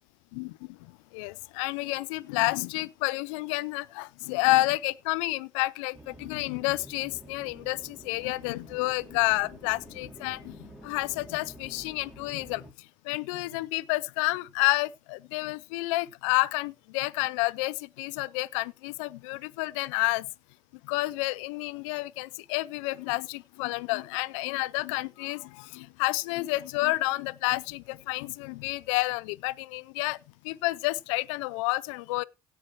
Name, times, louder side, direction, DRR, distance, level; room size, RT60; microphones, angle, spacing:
voice 1, 0.3-20.3 20.8-30.2 30.4-32.2, left 21 dB, 85° left, 0.6 m, -30 dB
sound 1, 5.9-12.7, equal, ahead, 4.3 m, -49 dB
16.5 x 5.9 x 4.4 m
hypercardioid pair, 60°, 16 cm